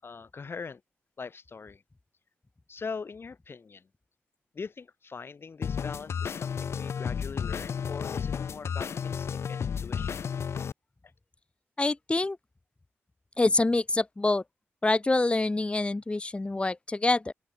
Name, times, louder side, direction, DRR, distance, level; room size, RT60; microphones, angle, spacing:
voice 1, 0.0-0.8 1.2-1.8 2.7-3.9 4.5-10.2, left 5 dB, 55° left, 6.6 m, -42 dB
sound 1, 5.6-10.7, left 7 dB, 75° left, 1.0 m, -32 dB
voice 2, 11.8-12.4 13.4-14.4 14.8-17.3, left 2 dB, 25° left, 0.9 m, -26 dB
open air
cardioid pair, 60°, 5 cm